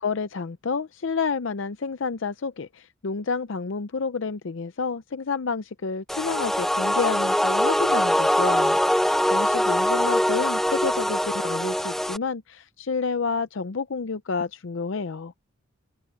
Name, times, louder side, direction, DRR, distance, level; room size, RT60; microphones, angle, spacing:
voice 1, 0.0-15.3, left 4 dB, 65° left, 0.6 m, -29 dB
sound 1, 6.1-12.2, equal, ahead, 0.5 m, -22 dB
open air
head